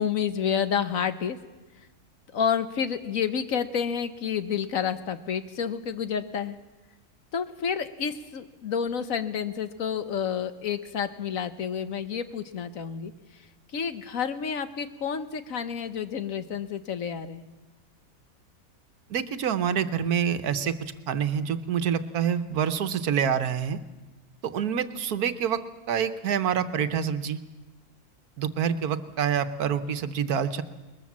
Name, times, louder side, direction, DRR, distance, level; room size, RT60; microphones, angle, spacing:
voice 1, 0.0-1.4 2.3-6.6 7.3-13.4 13.7-17.4, left 7 dB, 65° left, 11 dB, 1.4 m, -29 dB
voice 2, 19.1-23.8 24.4-25.6 25.9-27.4 28.4-30.6, right 8 dB, 80° right, 12 dB, 1.5 m, -27 dB
21.0 x 21.0 x 7.3 m, 1.1 s
omnidirectional pair, 1.6 m